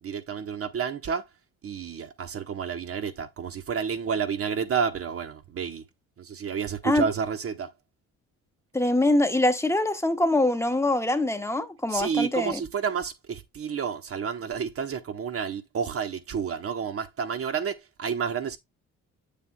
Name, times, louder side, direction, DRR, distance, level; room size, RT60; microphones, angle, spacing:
voice 1, 0.0-1.3 1.6-5.8 6.2-7.7 11.9-18.6, right 6 dB, 50° right, 1.0 m, -30 dB
voice 2, 8.7-12.6, left 1 dB, 10° left, 1.0 m, -24 dB
7.6 x 6.8 x 2.2 m
cardioid pair, 90°, 30 cm